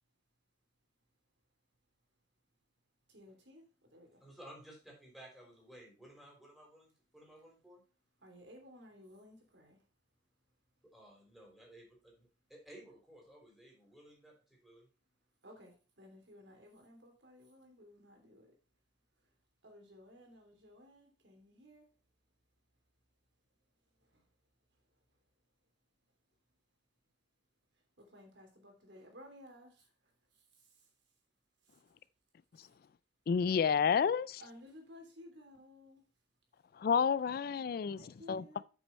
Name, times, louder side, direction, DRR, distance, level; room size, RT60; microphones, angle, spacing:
voice 1, 3.1-4.3 8.2-9.9 15.4-18.6 19.1-19.4 19.6-21.9 23.8-24.4 24.7-25.2 27.7-30.9 31.6-31.8 32.5-32.8 34.4-36.1 38.0-38.6, left 1 dB, 85° right, 3.1 m, -57 dB
voice 2, 4.2-7.8 10.8-14.3 14.6-14.9, right 1 dB, ahead, 3.7 m, -56 dB
voice 3, 33.3-34.4 36.8-38.0 38.3-38.4, left 6 dB, 55° left, 0.3 m, -30 dB
8.2 x 6.3 x 4.4 m
head